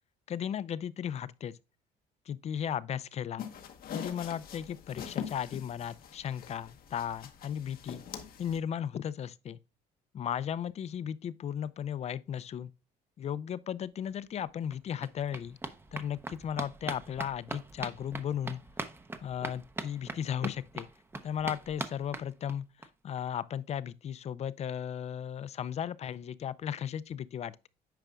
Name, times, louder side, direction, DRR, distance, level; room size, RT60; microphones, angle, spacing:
voice 1, 0.3-1.5 2.3-3.5 3.9-8.0 8.4-9.6 10.1-12.7 13.2-15.6 15.9-18.6 19.2-20.9 21.2-22.7 23.0-27.7, left 9 dB, 40° left, 0.4 m, -35 dB
sound 1, 3.4-8.6, left 8 dB, 60° left, 1.0 m, -43 dB
sound 2, 14.1-14.2 14.4-22.9 23.2-23.3 23.5-23.6 23.9-24.0, right 2 dB, 15° right, 0.6 m, -42 dB
9.0 x 5.0 x 2.3 m
cardioid pair, 110°, 17 cm